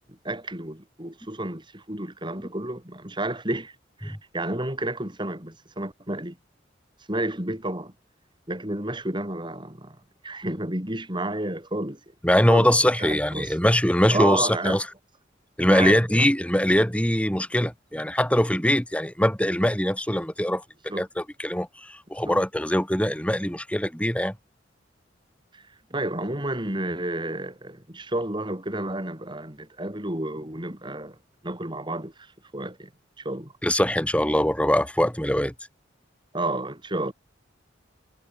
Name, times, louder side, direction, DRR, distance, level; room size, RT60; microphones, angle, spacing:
voice 1, 0.1-3.7 4.0-6.4 7.1-7.9 8.5-10.0 10.2-12.0 12.5-12.7 13.0-13.6 14.1-14.8 15.7-16.3 20.9-21.1 22.2-22.4 25.5-25.6 25.9-31.2 31.4-32.9 33.2-33.5 36.3-37.1, right 1 dB, 25° right, 5.3 m, -31 dB
voice 2, 12.2-14.8 15.6-20.6 21.0-24.3 33.6-35.5, equal, 5° left, 4.7 m, -22 dB
head